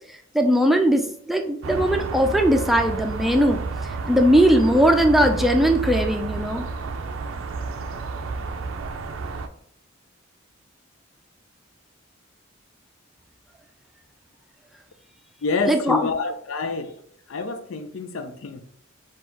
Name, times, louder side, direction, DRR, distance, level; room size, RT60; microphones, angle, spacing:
voice 1, 0.3-3.6 4.1-6.7 15.7-16.0, equal, ahead, 0.4 m, -19 dB
sound 1, 1.6-9.5, right 3 dB, 90° right, 0.5 m, -30 dB
voice 2, 15.4-17.0 17.3-18.6, left 4 dB, 90° left, 0.5 m, -27 dB
4.4 x 2.4 x 4.4 m
head